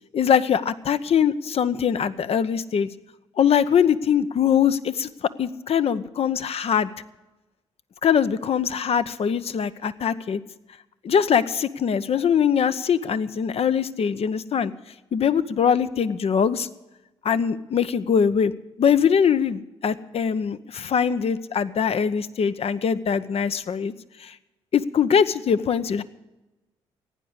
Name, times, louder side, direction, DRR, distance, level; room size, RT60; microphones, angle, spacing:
voice 1, 0.1-2.9 3.4-6.9 8.0-10.4 11.0-14.7 15.1-16.7 17.2-18.5 18.8-23.9 24.2-24.3 24.7-26.0, left 7 dB, 55° left, 13 dB, 0.9 m, -22 dB
15.5 x 9.5 x 8.1 m, 1.0 s
supercardioid pair, 55°, 12 cm